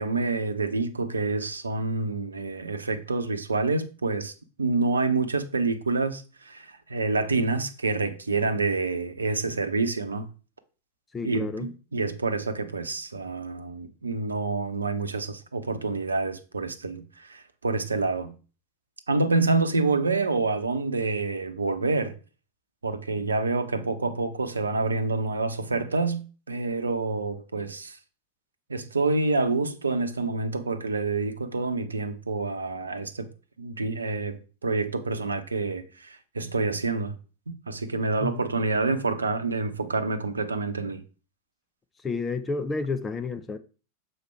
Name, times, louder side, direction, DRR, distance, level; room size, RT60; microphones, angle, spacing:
voice 1, 0.0-4.3 4.6-10.3 11.2-18.3 19.1-22.1 22.8-26.2 26.5-28.0 28.7-33.3 33.6-37.1 37.7-41.0, right 3 dB, 75° right, 0.8 m, -27 dB
voice 2, 11.1-11.7 38.2-38.4 42.0-43.6, left 4 dB, 15° left, 0.7 m, -30 dB
6.8 x 4.3 x 4.5 m
figure-of-eight pair, 90°, 0 cm